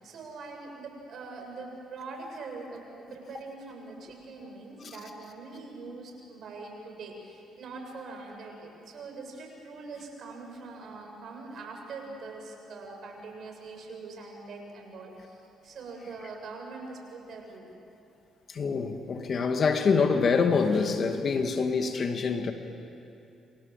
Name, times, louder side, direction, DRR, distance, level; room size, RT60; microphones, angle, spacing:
voice 1, 0.0-17.7, right 3 dB, 65° right, 2 dB, 6.9 m, -43 dB
voice 2, 18.5-22.5, left 5 dB, 55° left, 6 dB, 2.4 m, -25 dB
28.5 x 26.5 x 7.7 m, 2.7 s
supercardioid pair, 65°, 0 cm